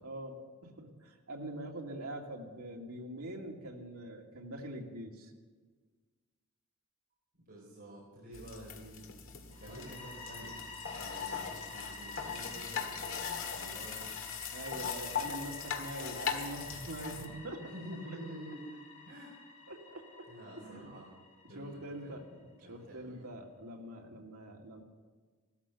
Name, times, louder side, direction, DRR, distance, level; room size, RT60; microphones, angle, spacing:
voice 1, 0.0-5.3 14.5-17.6 19.7-20.3 20.6-20.9 21.4-24.8, right 1 dB, 85° right, 0 dB, 2.3 m, -44 dB
voice 2, 7.5-9.1 9.5-10.6 11.0-14.0 17.6-18.6 19.1-19.3 20.3-21.0 21.5-22.3 22.6-23.2, right 1 dB, 50° right, -6 dB, 4.3 m, -49 dB
sound 1, 8.3-17.3, left 7 dB, 65° left, 1.9 m, -40 dB
sound 2, 9.5-22.2, left 3 dB, 30° left, 3.2 m, -49 dB
16.0 x 13.5 x 5.9 m, 1.5 s
head